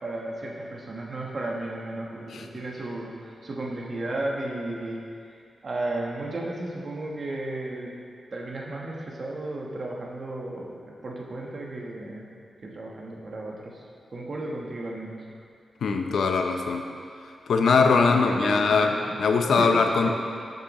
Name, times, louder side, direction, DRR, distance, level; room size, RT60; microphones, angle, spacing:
voice 1, 0.0-5.3 5.6-7.9 8.3-12.3 12.6-13.9 14.1-15.3 17.8-19.2 19.5-19.7 20.0-20.1, right 2 dB, 40° right, -2 dB, 1.1 m, -34 dB
voice 2, 15.8-16.8 17.5-18.9 19.2-20.1, left 4 dB, 85° left, 4 dB, 0.6 m, -21 dB
11.0 x 6.7 x 3.0 m, 2.3 s
wide cardioid pair, 150°, 0 cm